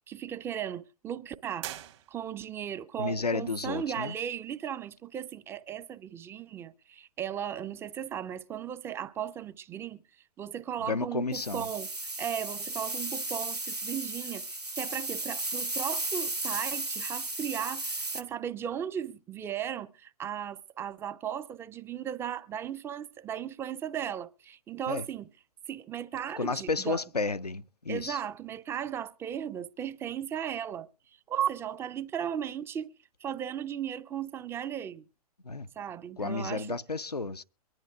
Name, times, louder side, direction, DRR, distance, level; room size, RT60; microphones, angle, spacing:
voice 1, 0.0-1.7 2.1-10.0 10.4-11.9 12.2-25.3 25.7-27.0 27.9-30.9 31.3-32.9 33.2-35.0 35.8-36.8, right 9 dB, 10° right, 0.5 m, -36 dB
sound 1, 1.6-2.6, right 13 dB, 45° right, 1.4 m, -42 dB
voice 2, 3.0-4.2 10.8-11.7 24.9-25.0 26.4-28.2 35.4-35.7 36.2-37.4, left 4 dB, 90° left, 0.5 m, -32 dB
sound 2, 11.3-18.2, right 2 dB, 90° right, 1.3 m, -35 dB
23.5 x 10.5 x 2.4 m
figure-of-eight pair, 110°, 20 cm